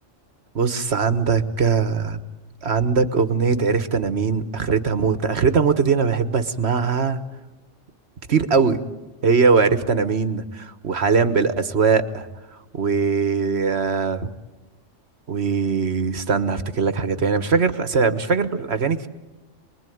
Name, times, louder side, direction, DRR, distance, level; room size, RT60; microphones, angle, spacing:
voice 1, 0.5-2.2 2.6-7.2 8.3-8.8 9.2-12.3 12.7-14.3 15.3-19.1, right 5 dB, 55° right, 11 dB, 1.5 m, -21 dB
28.0 x 21.5 x 9.3 m, 1.1 s
omnidirectional pair, 1.3 m